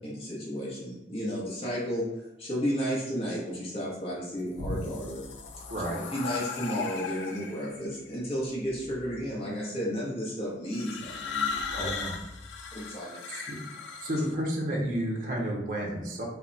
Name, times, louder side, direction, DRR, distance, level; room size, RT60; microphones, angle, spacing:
voice 1, 0.0-2.1 2.4-5.2 6.1-11.9 12.7-13.2, equal, 35° left, -6 dB, 0.7 m, -33 dB
sound 1, 4.3-7.8 8.7-9.1 10.7-14.3, left 5 dB, 80° left, 0.4 m, -36 dB
voice 2, 5.7-6.0 11.8-12.1 13.0-13.6 14.0-16.2, equal, 50° right, -2 dB, 0.6 m, -31 dB
2.1 x 2.1 x 3.7 m, 0.99 s
head